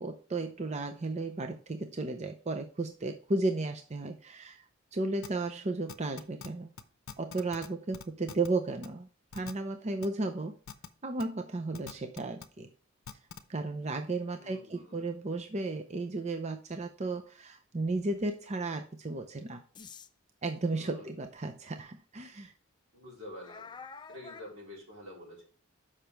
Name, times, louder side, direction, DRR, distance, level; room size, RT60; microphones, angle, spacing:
voice 1, 0.0-4.6 4.9-6.7 7.2-9.1 9.3-10.6 11.0-12.7 13.5-19.6 20.4-22.5, right 2 dB, 30° right, 6 dB, 0.6 m, -34 dB
sound 1, 5.2-5.3 5.9-6.5 6.8-6.9 7.1-7.7 7.9-8.5 8.8-8.9 9.3-9.5 10.0-10.1 10.7-10.9 11.2-11.3 11.7-12.4 13.1-13.4, left 6 dB, 70° left, 0.7 m, -43 dB
voice 2, 14.4-15.0 20.8-21.1 22.9-23.7 24.1-25.5, left 1 dB, 70° right, -4 dB, 4.1 m, -48 dB
sound 2, 19.7-20.1 21.2-21.3 21.9-22.0 23.4-24.5, left 5 dB, 20° left, 0.4 m, -47 dB
7.0 x 5.7 x 4.5 m, 0.40 s
head